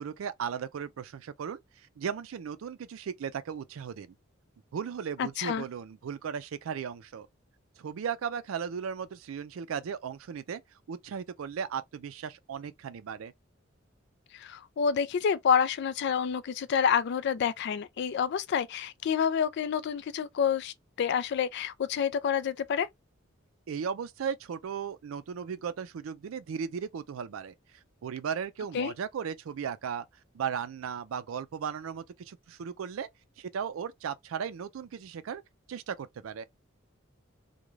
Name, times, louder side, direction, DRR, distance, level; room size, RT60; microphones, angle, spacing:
voice 1, 0.0-1.6 2.0-4.2 4.7-7.3 7.8-10.6 10.9-13.3 23.7-27.5 28.0-30.1 30.3-33.1 33.4-35.4 35.7-36.4, right 7 dB, 90° right, 0.4 m, -36 dB
voice 2, 5.2-5.6 14.3-22.9 28.7-28.9, left 7 dB, 55° left, 0.3 m, -28 dB
2.4 x 2.2 x 3.1 m
head